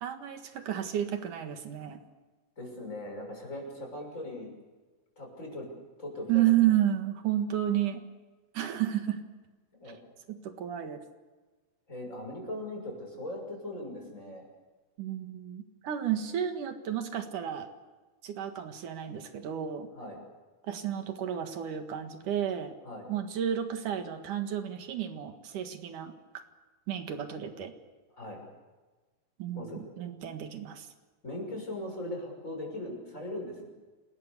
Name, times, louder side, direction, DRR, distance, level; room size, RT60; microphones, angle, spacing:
voice 1, 0.0-2.0 6.3-8.0 8.5-9.2 10.3-11.0 15.0-17.7 18.2-19.9 20.6-22.7 23.1-26.1 26.9-27.7 29.4-30.9, right 11 dB, 90° right, 6 dB, 3.3 m, -31 dB
voice 2, 2.6-4.5 5.2-5.7 6.0-6.7 9.7-10.0 11.9-14.5 20.0-20.2 22.8-23.1 28.1-28.4 29.5-29.8 30.2-30.3 31.2-33.7, left 1 dB, 25° left, 1 dB, 6.8 m, -39 dB
28.5 x 20.5 x 6.8 m, 1.3 s
omnidirectional pair, 3.5 m